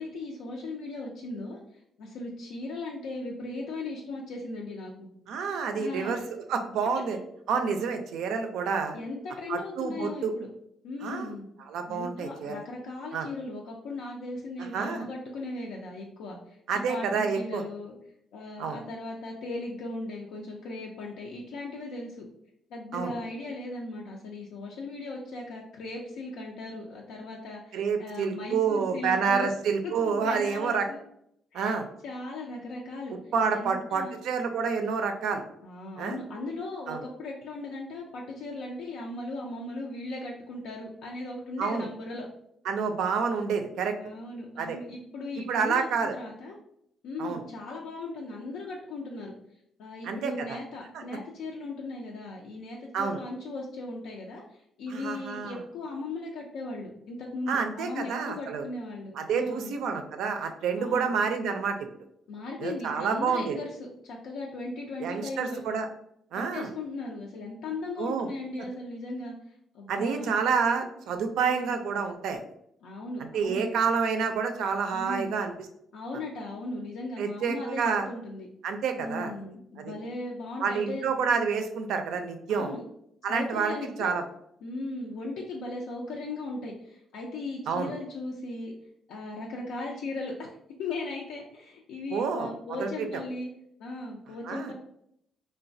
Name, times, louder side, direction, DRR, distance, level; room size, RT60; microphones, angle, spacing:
voice 1, 0.0-5.1 5.8-6.2 8.9-10.5 10.8-11.5 11.9-16.6 16.9-17.9 18.3-22.3 22.7-29.5 30.1-31.0 31.5-31.8 32.0-34.1 35.6-42.3 44.0-45.9 46.1-46.6 47.0-49.3 49.8-59.7 60.7-61.1 62.3-65.6 66.3-70.3 71.4-71.7 72.8-73.7 74.9-75.4 75.9-78.5 79.0-81.1 82.5-82.8 83.3-84.1 84.6-88.7 89.1-90.5 90.8-93.5 93.8-94.7, left 2 dB, 85° left, -2 dB, 0.4 m, -37 dB
voice 2, 5.3-6.2 6.5-7.2 7.5-9.0 9.5-10.3 11.0-11.3 11.7-12.5 13.1-13.3 14.6-15.1 16.7-17.6 18.6-18.8 22.9-23.1 27.7-30.9 31.5-31.9 33.3-35.4 36.0-36.2 36.9-37.0 41.6-41.9 42.7-43.9 44.6-44.8 45.5-46.1 47.2-47.4 50.0-50.6 52.9-53.2 54.9-55.6 57.5-58.6 59.2-61.8 62.6-63.6 65.0-65.9 66.3-66.7 68.0-68.3 69.9-72.4 73.2-75.5 77.2-78.1 78.6-79.3 79.8-79.9 80.6-82.8 83.2-84.2 87.7-87.9 92.1-92.5 92.8-93.2 94.5-94.7, right 5 dB, 80° right, 6 dB, 0.4 m, -28 dB
3.0 x 2.1 x 2.6 m, 0.74 s
cardioid pair, 90°, 0 cm